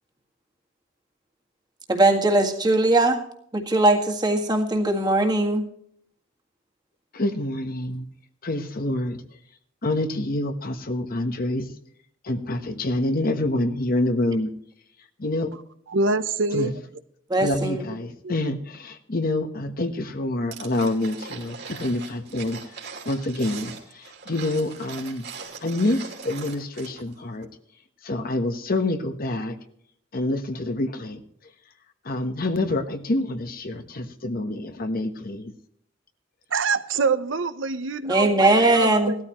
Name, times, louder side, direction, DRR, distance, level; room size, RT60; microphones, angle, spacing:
voice 1, 1.9-3.2 3.5-5.6 17.3-17.8 38.1-39.1, right 2 dB, 20° right, 2 dB, 1.8 m, -20 dB
voice 2, 7.1-8.1 8.4-9.2 9.8-11.7 12.2-14.5 15.2-15.5 16.5-16.7 17.4-22.6 23.0-25.2 25.6-27.5 28.0-29.5 30.1-31.2 32.0-35.5, left 1 dB, 50° left, 8 dB, 1.1 m, -27 dB
voice 3, 15.9-16.7 36.5-39.2, right 4 dB, 80° right, 11 dB, 0.8 m, -25 dB
sound 1, 20.5-27.1 27.4-27.5, right 5 dB, 60° right, 2.7 m, -40 dB
17.5 x 13.5 x 3.0 m, 0.68 s
head